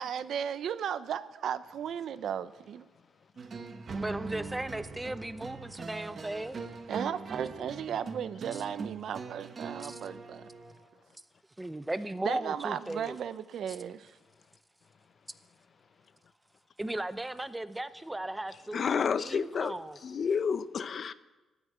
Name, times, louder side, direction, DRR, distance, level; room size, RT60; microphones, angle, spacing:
voice 1, 0.0-2.8 6.9-10.5 12.2-14.2, right 8 dB, 65° right, 0.6 m, -35 dB
sound 1, 3.4-10.8, right 4 dB, 40° right, 1.0 m, -42 dB
voice 2, 3.9-6.6 9.8-10.0 11.6-13.2 16.8-18.9 19.2-20.0, right 1 dB, 10° right, 0.6 m, -36 dB
voice 3, 18.7-21.1, left 6 dB, 45° left, 0.6 m, -30 dB
15.5 x 8.1 x 8.5 m
cardioid pair, 125°, 0 cm